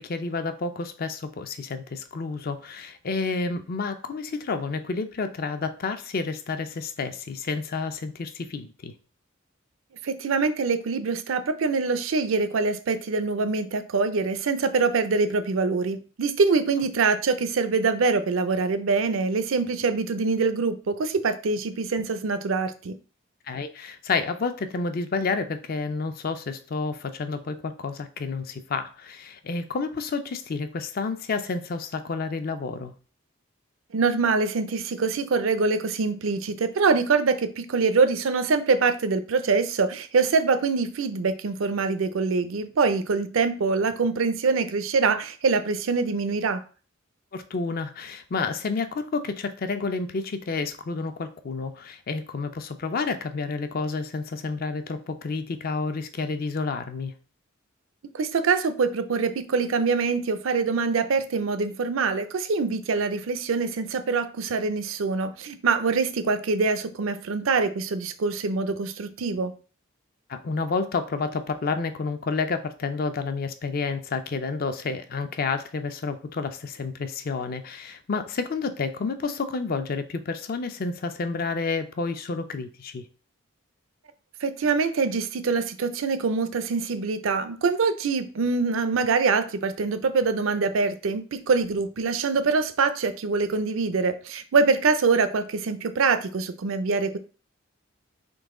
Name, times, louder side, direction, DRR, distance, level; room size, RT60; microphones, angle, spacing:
voice 1, 0.0-8.9 23.5-32.9 47.3-57.1 70.3-83.1, left 4 dB, 45° left, 0.4 m, -30 dB
voice 2, 10.0-22.9 33.9-46.6 58.1-69.5 84.4-97.2, right 4 dB, 75° right, 0.5 m, -24 dB
3.9 x 3.0 x 3.6 m
head